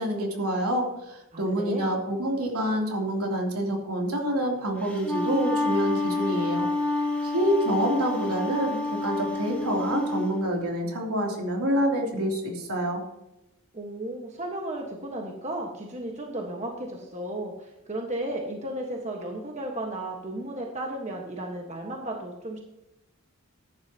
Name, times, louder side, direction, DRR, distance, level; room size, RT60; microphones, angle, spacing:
voice 1, 0.0-6.7 7.3-13.0, equal, 80° right, 0 dB, 3.1 m, -27 dB
voice 2, 1.3-1.9 13.7-22.6, right 1 dB, 30° right, 1 dB, 1.5 m, -34 dB
Wind instrument woodwind instrument, 4.8-10.3, left 2 dB, 5° left, 1.8 m, -28 dB
14.5 x 11.0 x 2.9 m, 0.89 s
head